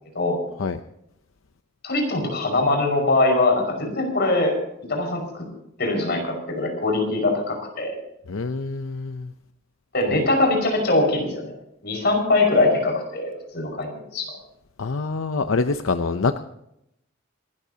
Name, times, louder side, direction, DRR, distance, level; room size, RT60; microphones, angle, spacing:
voice 1, 1.8-4.5 4.9-5.2 5.8-8.0 9.9-11.5 11.8-14.3, left 2 dB, 55° left, 1 dB, 5.4 m, -22 dB
voice 2, 8.3-9.3 14.8-16.4, left 4 dB, 90° left, 9 dB, 0.7 m, -25 dB
27.5 x 13.5 x 2.8 m, 0.80 s
head